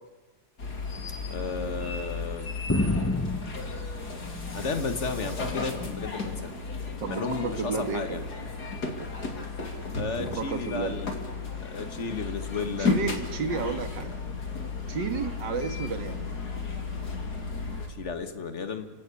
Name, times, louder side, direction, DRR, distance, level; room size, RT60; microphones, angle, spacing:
sound 1, 0.6-17.9, left 4 dB, 60° left, 3.3 m, -34 dB
voice 1, 1.3-2.5 4.5-6.6 7.1-8.2 9.9-11.3 11.6-12.9 17.9-18.9, left 4 dB, 40° left, 8 dB, 2.1 m, -33 dB
sound 2, 2.7-4.9 5.3-6.2 7.1-7.5 8.5-8.6, left 1 dB, 10° left, 0.9 m, -31 dB
voice 2, 7.0-8.2 10.2-11.0 12.8-14.2 14.9-16.4, right 5 dB, 85° right, 8 dB, 2.5 m, -32 dB
30.0 x 17.5 x 8.6 m, 1.3 s
omnidirectional pair, 1.9 m